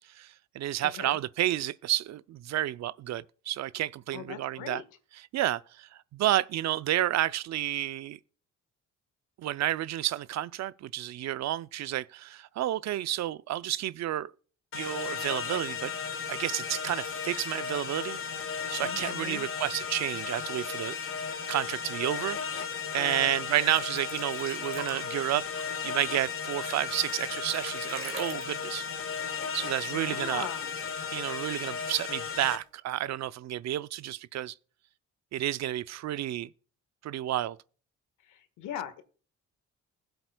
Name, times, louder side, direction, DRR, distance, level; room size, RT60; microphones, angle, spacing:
voice 1, 0.2-4.8 5.3-8.2 9.4-14.3 14.7-15.9 16.3-18.2 18.7-20.9 21.5-22.4 22.9-25.4 25.8-28.8 29.5-30.5 31.1-34.5 35.3-36.5 37.0-37.6, right 13 dB, 60° right, 0.5 m, -31 dB
voice 2, 4.1-4.8 18.8-19.5 23.0-23.6 29.8-30.7 38.2-39.0, left 10 dB, 85° left, 1.5 m, -40 dB
sound 1, 14.7-32.6, left 6 dB, 45° left, 1.6 m, -35 dB
sound 2, 23.8-30.2 30.4-30.5 30.9-31.6 32.4-32.5, right 5 dB, 45° right, 2.5 m, -45 dB
20.5 x 7.9 x 2.2 m
cardioid pair, 90°, 30 cm